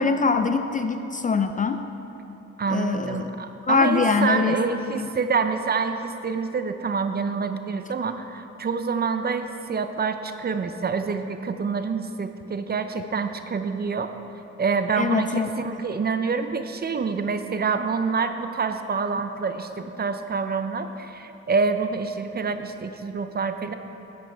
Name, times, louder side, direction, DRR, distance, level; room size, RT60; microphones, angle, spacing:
voice 1, 0.0-1.8 2.7-3.4 3.7-4.5 5.0-5.1 15.0-15.5, left 4 dB, 25° left, 8 dB, 0.4 m, -23 dB
voice 2, 2.6-14.1 14.6-15.3 15.6-23.7, right 5 dB, 30° right, 9 dB, 0.6 m, -27 dB
11.0 x 7.7 x 4.6 m, 3.0 s
cardioid pair, 90°, 30 cm